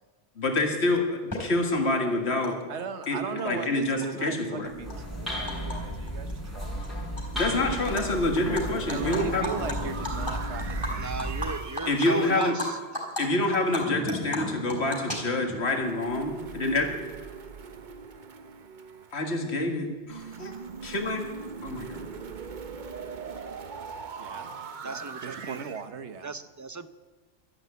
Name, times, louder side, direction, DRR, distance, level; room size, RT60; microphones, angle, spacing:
voice 1, 0.4-1.0 1.4-2.6 3.1-4.7 7.3-9.5 11.9-12.5 13.2-16.9 19.1-20.5 20.8-21.3 21.6-22.0, left 2 dB, 70° left, 3 dB, 2.1 m, -27 dB
Animal, 1.3-1.4 2.4-2.5 2.8-3.7 4.0-5.8 6.1-6.3 6.6-7.4 7.7-8.0 8.4-12.7 12.9-13.2 13.5-15.6, left 2 dB, 15° left, 4.1 m, -35 dB
voice 2, 2.4-7.1 8.9-11.3 24.2-24.5 24.8-26.4, right 6 dB, 85° right, 10 dB, 1.3 m, -38 dB
sound 1, 4.7-11.6, equal, ahead, 4.2 m, -34 dB
sound 2, 7.4-12.5 15.6-19.4 20.1-25.9, right 5 dB, 45° right, 0.9 m, -41 dB
voice 3, 10.9-12.8 24.8-25.6 26.2-26.9, right 3 dB, 25° right, 13 dB, 0.4 m, -35 dB
12.5 x 11.0 x 8.4 m, 1.4 s
omnidirectional pair, 1.1 m